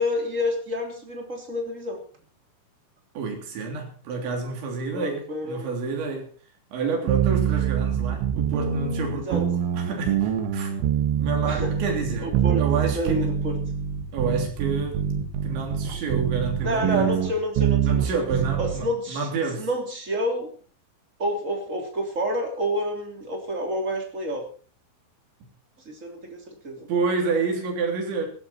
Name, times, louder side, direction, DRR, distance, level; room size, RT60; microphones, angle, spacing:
voice 1, 0.0-2.0 4.9-5.7 9.3-9.4 11.4-11.7 12.2-12.6 12.9-13.6 16.6-18.2 18.6-19.3 19.6-20.5 21.2-24.4 25.8-26.9, equal, 20° right, 2.9 m, -28 dB
voice 2, 3.2-6.3 6.7-10.8 11.2-13.3 14.1-15.0 15.4-17.1 17.8-19.7 26.9-28.3, right 4 dB, 70° right, 5.6 m, -29 dB
sound 1, 7.1-18.9, right 9 dB, 90° right, 4.1 m, -25 dB
16.5 x 13.5 x 4.4 m
omnidirectional pair, 5.4 m